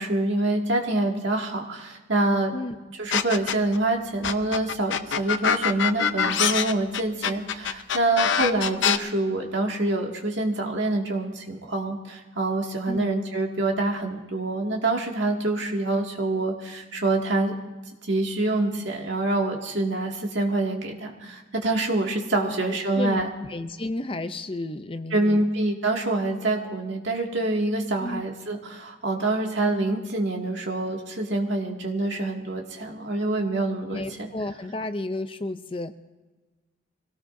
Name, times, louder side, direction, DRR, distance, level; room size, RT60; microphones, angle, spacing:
voice 1, 0.0-2.5 3.0-17.5 18.0-23.3 25.1-34.3, right 2 dB, 60° right, 0 dB, 2.2 m, -26 dB
sound 1, 3.1-3.8 4.2-9.0, left 7 dB, 65° left, 0.7 m, -24 dB
voice 2, 12.9-13.2 22.4-25.5 28.0-28.2 33.9-35.9, left 2 dB, 25° left, 10 dB, 0.5 m, -32 dB
25.0 x 18.0 x 2.7 m, 1.2 s
head